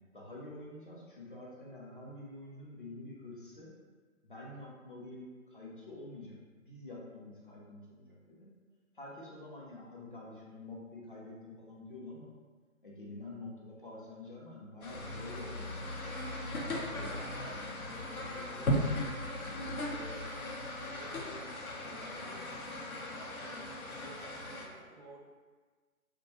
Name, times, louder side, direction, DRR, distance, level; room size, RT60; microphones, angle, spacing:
voice 1, 0.1-3.7 4.2-8.5 8.9-12.3 12.8-16.0 16.9-17.1, left 2 dB, 40° left, -6 dB, 0.5 m, -47 dB
sound 1, 14.8-24.7, left 1 dB, 85° left, 0.7 m, -38 dB
sound 2, 14.9-21.1, left 2 dB, 60° left, 0.9 m, -45 dB
voice 2, 16.7-20.4 20.8-22.5 22.9-25.2, equal, 35° right, -7 dB, 0.4 m, -54 dB
2.6 x 2.2 x 2.9 m, 1.4 s
figure-of-eight pair, 140°, 42 cm